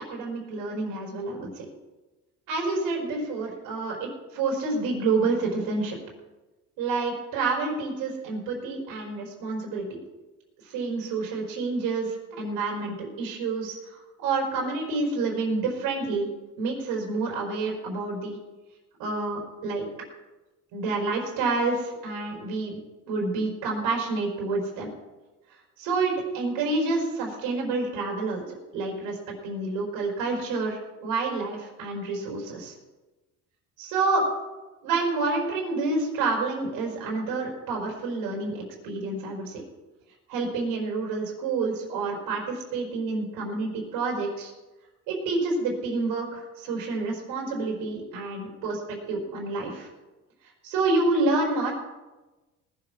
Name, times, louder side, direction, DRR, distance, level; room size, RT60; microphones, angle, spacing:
voice 1, 0.0-1.6 2.5-5.9 6.8-10.0 10.6-16.3 16.6-18.4 19.0-19.9 20.7-22.8 23.1-24.9 25.5-28.4 28.7-29.2 29.4-32.7 33.8-34.3 34.8-39.6 40.3-44.5 45.1-49.9 50.6-51.7, right 3 dB, 85° right, -2 dB, 4.8 m, -28 dB
19.0 x 7.6 x 6.1 m, 1.1 s
cardioid pair, 100°, 33 cm